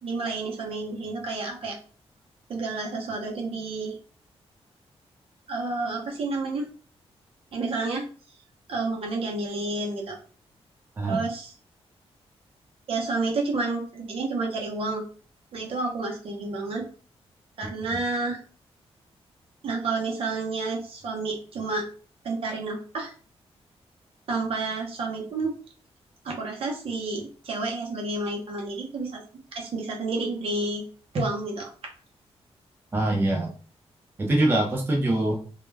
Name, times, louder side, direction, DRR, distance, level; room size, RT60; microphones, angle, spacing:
voice 1, 0.0-1.8 2.5-4.0 5.5-6.7 7.5-8.1 8.7-10.2 11.0-11.5 12.9-15.0 15.5-16.8 17.6-18.4 19.6-21.9 22.2-23.1 24.3-25.6 26.2-29.2 29.5-30.8 31.1-31.7, right 3 dB, 60° right, 0 dB, 0.7 m, -30 dB
voice 2, 32.9-33.5 34.2-35.4, right 1 dB, 20° right, 0 dB, 0.4 m, -23 dB
2.3 x 2.1 x 3.2 m, 0.39 s
wide cardioid pair, 165°, 11 cm